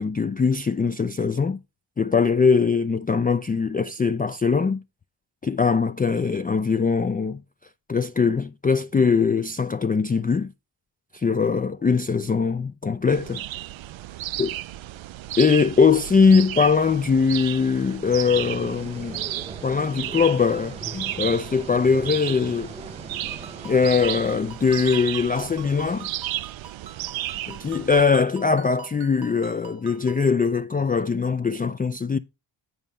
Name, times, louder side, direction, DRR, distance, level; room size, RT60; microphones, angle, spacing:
voice 1, 0.0-1.6 2.0-4.8 5.4-7.4 7.9-10.5 11.1-13.4 14.4-14.5 15.4-19.2 19.6-22.7 23.6-26.1 27.5-32.2, left 5 dB, 20° left, 0.3 m, -21 dB
sound 1, 13.1-28.0, right 14 dB, 70° right, 0.5 m, -34 dB
sound 2, 18.2-24.4, right 2 dB, 15° right, 0.9 m, -41 dB
Ringtone, 23.4-30.3, right 6 dB, 50° right, 0.9 m, -46 dB
9.4 x 4.1 x 5.4 m
cardioid pair, 65°, 48 cm